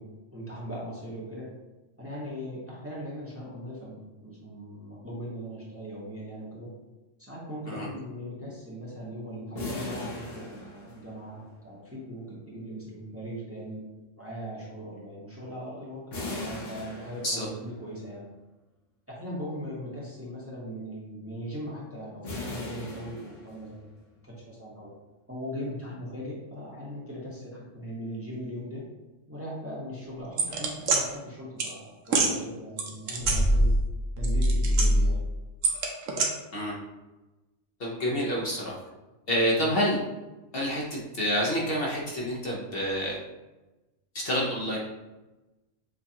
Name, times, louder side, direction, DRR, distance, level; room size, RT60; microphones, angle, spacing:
voice 1, 0.0-1.5 2.0-6.7 7.2-13.8 14.2-16.0 16.4-18.3 19.1-23.8 24.2-24.9 25.3-28.8 29.3-33.7 34.2-35.2, equal, 10° right, -6 dB, 1.0 m, -39 dB
sound 1, 9.6-11.4 16.1-17.8 22.2-23.9, left 2 dB, 75° left, 1.3 m, -38 dB
sound 2, 30.4-31.0 31.6-31.7 32.1-32.3 32.8-33.9 34.2-35.1 35.6-36.3, right 1 dB, 85° right, 1.1 m, -23 dB
voice 2, 37.8-38.8 39.3-40.0 40.5-43.2 44.1-44.8, equal, 55° left, -4 dB, 0.9 m, -28 dB
7.0 x 2.4 x 2.8 m, 1.1 s
omnidirectional pair, 1.3 m